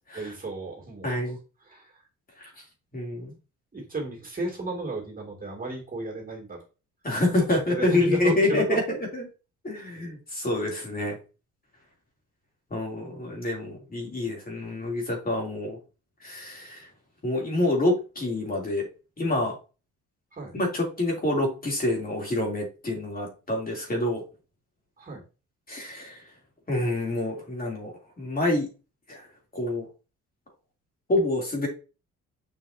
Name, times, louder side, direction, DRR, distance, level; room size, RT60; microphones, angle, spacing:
voice 1, 0.1-1.2 1.6-1.9 2.5-2.6 3.7-6.6 7.4-8.8 9.7-9.9 20.3-20.5 25.0-25.2, right 2 dB, 30° right, 0 dB, 2.8 m, -33 dB
voice 2, 1.0-1.4 2.4-2.5 2.9-3.3 7.0-8.8 9.1-9.3 9.6-11.2 12.7-15.8 16.2-16.9 17.2-18.9 19.2-19.6 20.5-24.2 25.7-26.2 26.7-27.9 28.2-28.7 29.1-29.3 29.5-29.9 31.1-31.7, left 1 dB, 30° left, -1 dB, 3.2 m, -27 dB
7.3 x 5.6 x 2.9 m, 0.32 s
cardioid pair, 90°, 30 cm